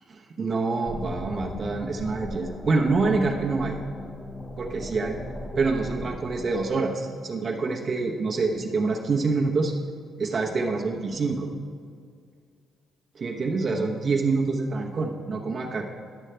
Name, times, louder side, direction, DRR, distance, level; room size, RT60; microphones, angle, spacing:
voice 1, 0.1-3.8 4.6-5.2 5.6-9.7 10.2-11.5 13.1-15.9, right 3 dB, 45° right, -1 dB, 1.0 m, -26 dB
sound 1, 0.8-6.7, left 1 dB, 25° left, 0.9 m, -37 dB
11.5 x 6.3 x 3.3 m, 2.2 s
cardioid pair, 90°, 0 cm